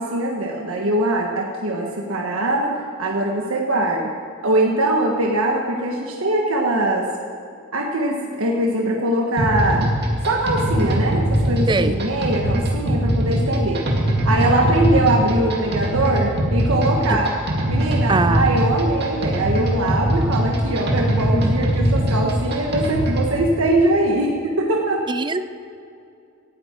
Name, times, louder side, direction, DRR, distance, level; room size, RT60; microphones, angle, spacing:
voice 1, 0.0-4.1 4.4-7.1 7.7-9.9 10.2-13.8 14.2-17.3 17.7-25.0, right 1 dB, 90° right, -1 dB, 1.4 m, -22 dB
sound 1, 9.4-23.3, equal, 50° right, 2.3 m, -21 dB
voice 2, 11.7-12.0 18.1-18.7 25.1-25.4, right 3 dB, 20° right, 12 dB, 0.4 m, -21 dB
18.5 x 13.5 x 4.5 m, 2.5 s
head